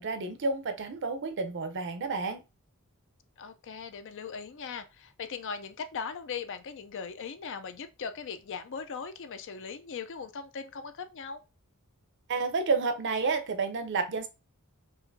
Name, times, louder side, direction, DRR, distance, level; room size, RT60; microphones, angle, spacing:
voice 1, 0.0-2.4 12.3-14.3, right 4 dB, 55° right, 0.6 m, -30 dB
voice 2, 3.4-11.4, left 5 dB, 55° left, 0.4 m, -39 dB
5.6 x 2.5 x 2.6 m
head